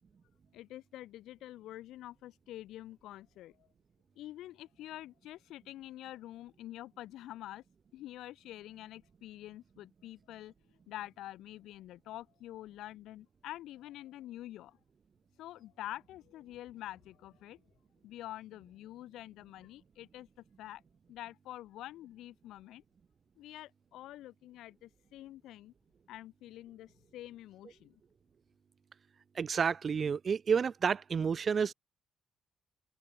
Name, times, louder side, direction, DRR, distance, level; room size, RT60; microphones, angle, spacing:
voice 1, 0.5-3.7 4.1-7.6 7.9-14.8 15.4-17.6 18.0-20.8 21.1-22.8 23.4-25.7 26.1-28.0, left 14 dB, 85° left, 5.1 m, -47 dB
voice 2, 29.4-31.7, right 6 dB, 45° right, 0.3 m, -30 dB
open air
cardioid pair, 90°, 0 cm